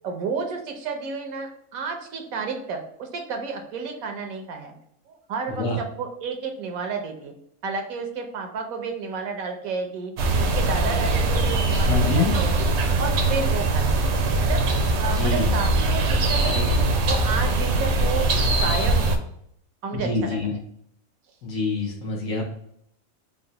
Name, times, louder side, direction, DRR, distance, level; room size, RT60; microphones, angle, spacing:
voice 1, 0.0-4.7 5.1-7.3 7.6-10.1 10.4-12.7 13.0-14.1 14.4-14.6 15.0-16.8 17.1-18.3 18.6-19.2 19.8-20.6, right 5 dB, 85° right, 4 dB, 1.2 m, -31 dB
voice 2, 5.5-5.8 11.9-12.3 15.1-15.5 16.4-16.6 19.9-20.5 21.4-22.4, left 3 dB, 75° left, -1 dB, 1.2 m, -26 dB
sound 1, 10.2-19.2, right 2 dB, 65° right, 0.7 m, -22 dB
3.8 x 2.1 x 3.8 m, 0.71 s
omnidirectional pair, 1.4 m